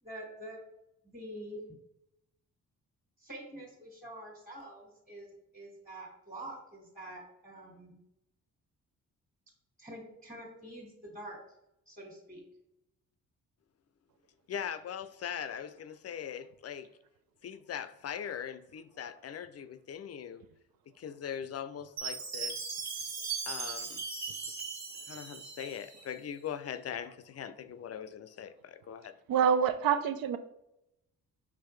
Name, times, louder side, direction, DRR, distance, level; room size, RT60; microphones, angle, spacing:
voice 1, 0.0-0.6 1.0-1.6 3.2-8.0 9.8-11.4 11.9-12.4, right 1 dB, 20° right, -1 dB, 1.7 m, -46 dB
voice 2, 14.5-16.9 17.4-20.4 21.0-22.6 23.5-24.0 25.1-29.2, left 8 dB, 45° left, 13 dB, 0.4 m, -41 dB
Chime, 22.0-26.1, right 5 dB, 50° right, 1.0 m, -38 dB
voice 3, 29.3-30.4, right 7 dB, 75° right, 11 dB, 0.5 m, -26 dB
4.8 x 3.5 x 3.1 m, 0.83 s
supercardioid pair, 50°, 35 cm